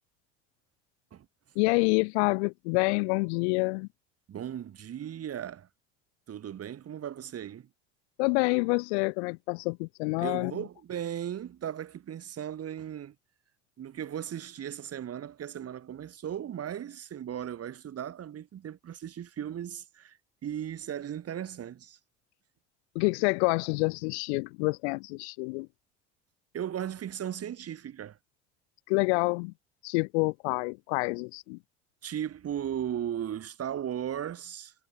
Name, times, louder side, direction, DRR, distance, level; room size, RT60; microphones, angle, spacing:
voice 1, 1.6-3.9 8.2-10.5 22.9-25.7 28.9-29.5 29.8-31.6, left 32 dB, 65° left, 1.0 m, -27 dB
voice 2, 4.3-5.7 6.3-7.7 10.2-13.2 13.8-22.0 26.5-28.2 32.0-34.7, right 10 dB, 40° right, 5.8 m, -37 dB
hypercardioid pair, 70°, 36 cm